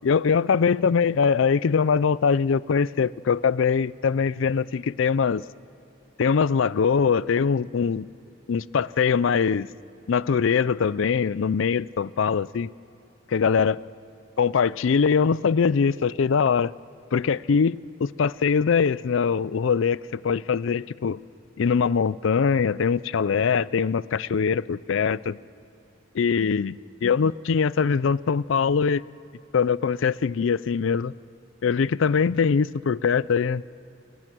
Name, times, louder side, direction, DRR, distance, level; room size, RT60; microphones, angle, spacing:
voice 1, 0.0-5.4 6.2-8.0 8.5-9.7 10.1-12.7 13.3-13.8 14.4-16.7 17.1-21.2 21.6-25.4 26.1-29.0 29.5-31.1 31.6-33.6, left 6 dB, 70° left, 0.4 m, -22 dB
29.0 x 18.5 x 6.1 m
head